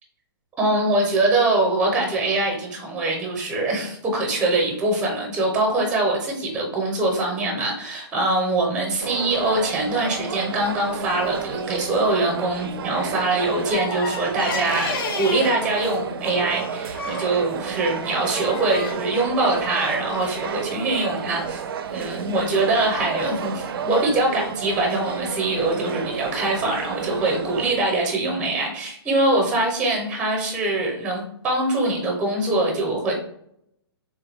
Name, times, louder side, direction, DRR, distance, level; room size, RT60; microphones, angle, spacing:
voice 1, 0.6-21.6 21.9-33.1, right 2 dB, 10° right, 0 dB, 0.6 m, -23 dB
sound 1, 9.0-27.7, right 7 dB, 60° right, 0.4 m, -31 dB
sound 2, 13.7-15.6 16.9-17.4 18.0-18.9, left 4 dB, 60° left, 0.7 m, -31 dB
3.3 x 2.2 x 3.3 m, 0.72 s
hypercardioid pair, 155°, 13 cm